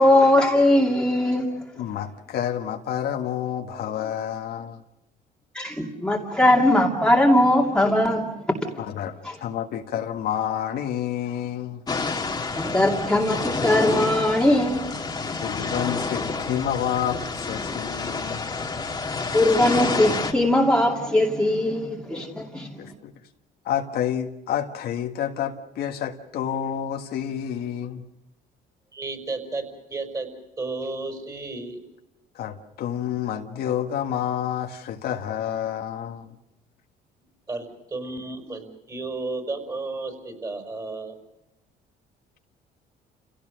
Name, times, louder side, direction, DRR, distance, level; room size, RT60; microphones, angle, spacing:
voice 1, 0.0-1.5 5.5-8.3 8.7-8.8 9.2-9.3 12.5-15.0 19.3-22.7, left 1 dB, 5° left, 2.6 m, -20 dB
voice 2, 1.8-4.8 8.8-11.8 15.4-18.5 22.8-23.1 23.7-28.0 32.4-36.4, left 10 dB, 70° left, 1.7 m, -29 dB
sound 1, 11.9-20.3, left 4 dB, 25° left, 2.0 m, -29 dB
voice 3, 28.9-30.3 30.6-31.8 37.5-41.2, right 3 dB, 20° right, 5.4 m, -33 dB
30.0 x 17.0 x 6.5 m
cardioid pair, 110°, 17 cm